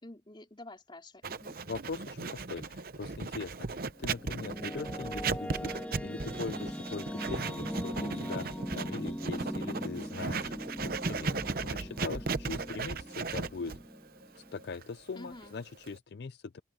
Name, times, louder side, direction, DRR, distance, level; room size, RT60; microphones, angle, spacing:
voice 1, 0.0-1.6 15.1-15.5, left 1 dB, 25° left, 3.7 m, -49 dB
Writing, 1.2-16.0, right 4 dB, 50° right, 0.8 m, -37 dB
voice 2, 1.7-5.7 6.0-10.5 10.8-13.7 14.3-16.6, left 4 dB, 55° left, 0.4 m, -41 dB
sound 1, 3.9-14.7, equal, 10° left, 2.4 m, -40 dB
open air
head